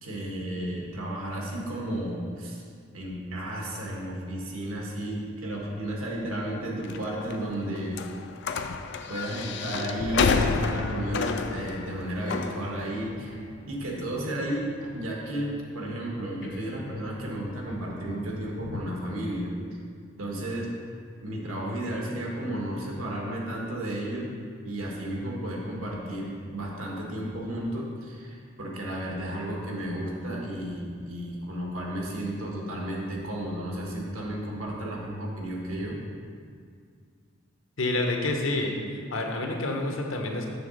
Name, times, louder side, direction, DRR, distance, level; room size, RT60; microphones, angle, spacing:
voice 1, 0.0-2.6 2.9-8.0 9.1-13.4 13.7-14.7 14.9-19.5 20.2-20.7 21.2-24.3 24.6-36.0, right 1 dB, 90° right, -2 dB, 1.4 m, -33 dB
sound 1, 6.8-18.8, left 5 dB, 55° left, 0.4 m, -32 dB
voice 2, 37.8-38.7 39.1-40.5, left 2 dB, 70° left, 2 dB, 0.9 m, -28 dB
7.0 x 3.8 x 6.3 m, 2.2 s
head